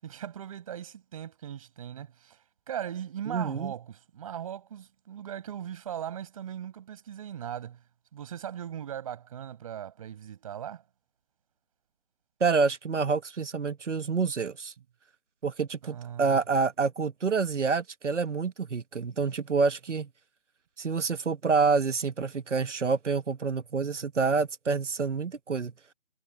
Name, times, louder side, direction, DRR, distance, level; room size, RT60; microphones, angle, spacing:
voice 1, 0.0-7.8 8.1-10.8 15.8-16.4, right 9 dB, 25° right, 6.7 m, -39 dB
voice 2, 3.3-3.7 12.4-14.7 15.4-20.1 20.8-25.7, right 4 dB, 70° right, 1.5 m, -27 dB
figure-of-eight pair, 165°, 38 cm